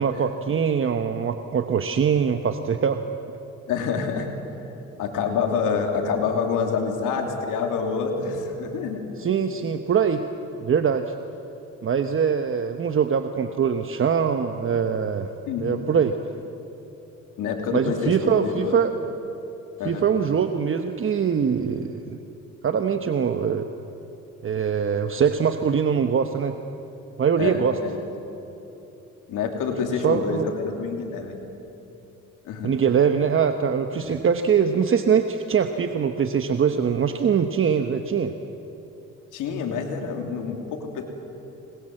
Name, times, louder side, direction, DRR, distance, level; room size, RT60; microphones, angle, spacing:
voice 1, 0.0-3.2 9.2-10.2 10.6-11.1 11.8-15.3 15.6-16.1 17.7-18.9 19.8-22.2 22.6-23.7 24.4-26.6 27.2-27.8 30.0-30.5 32.6-38.3, right 7 dB, 45° right, 7 dB, 1.1 m, -23 dB
voice 2, 3.7-4.3 5.0-9.1 15.4-15.8 17.4-18.8 19.8-20.1 27.4-28.0 29.3-31.4 32.4-32.7 34.0-34.2 39.3-41.0, left 5 dB, 90° left, 3 dB, 3.0 m, -27 dB
27.0 x 21.0 x 7.8 m, 3.0 s
cardioid pair, 90°, 30 cm